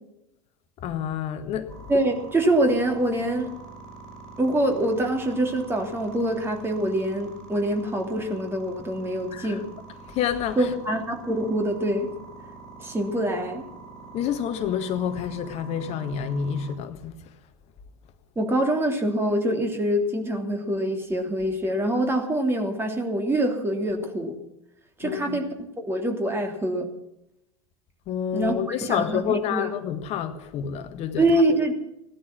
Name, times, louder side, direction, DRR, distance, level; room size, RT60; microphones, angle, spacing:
voice 1, 0.8-1.7 9.3-9.6 10.1-10.7 14.1-17.2 25.0-25.4 28.1-31.4, left 8 dB, 40° left, 1.6 m, -28 dB
sound 1, 1.7-16.8, right 3 dB, 5° left, 5.7 m, -45 dB
voice 2, 1.9-3.6 4.4-9.7 10.6-12.1 12.8-13.6 18.3-24.4 25.0-26.9 28.3-28.5 28.8-29.7 31.2-31.7, right 1 dB, 15° right, 3.2 m, -25 dB
17.0 x 12.5 x 6.1 m
figure-of-eight pair, 80°, 16 cm